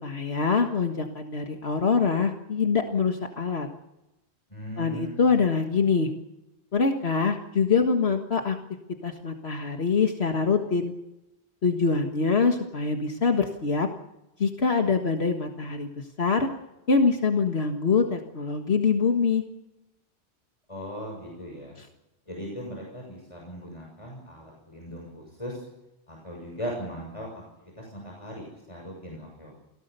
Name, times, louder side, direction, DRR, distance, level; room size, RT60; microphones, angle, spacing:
voice 1, 0.0-3.7 4.8-6.1 6.7-8.6 9.0-10.9 11.6-13.9 14.4-16.5 16.9-19.4 21.8-21.9, left 5 dB, 70° left, 3 dB, 1.9 m, -24 dB
voice 2, 4.5-5.2 20.7-21.8 22.3-25.6 26.1-27.4 27.8-29.6, equal, 30° left, -1 dB, 6.8 m, -38 dB
29.5 x 18.5 x 6.9 m, 0.95 s
omnidirectional pair, 1.1 m